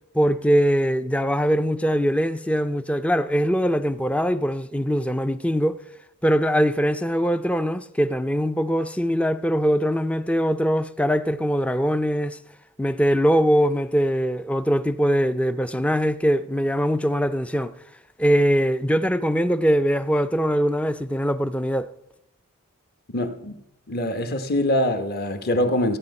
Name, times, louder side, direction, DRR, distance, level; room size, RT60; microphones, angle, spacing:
voice 1, 0.1-5.8 6.2-12.4 12.8-17.7 18.2-21.9, equal, 5° left, 0.4 m, -22 dB
voice 2, 23.1-23.6 23.9-26.0, left 1 dB, 45° left, 1.1 m, -24 dB
16.0 x 9.4 x 5.4 m
head